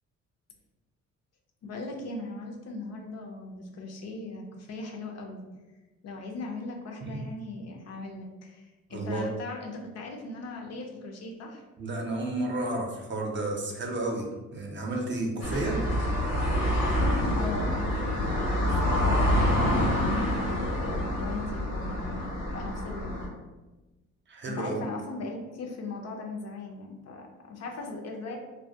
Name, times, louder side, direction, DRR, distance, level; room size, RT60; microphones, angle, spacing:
voice 1, 1.6-5.5 6.0-11.6 17.3-23.3 24.5-28.4, left 2 dB, 60° left, 1 dB, 0.5 m, -39 dB
voice 2, 8.9-9.3 11.8-15.8 24.3-24.8, right 2 dB, 40° right, 0 dB, 0.5 m, -32 dB
sound 1, 15.4-23.3, left 1 dB, 85° left, 1.0 m, -27 dB
2.2 x 2.1 x 2.7 m, 1.1 s
cardioid pair, 90°, 30 cm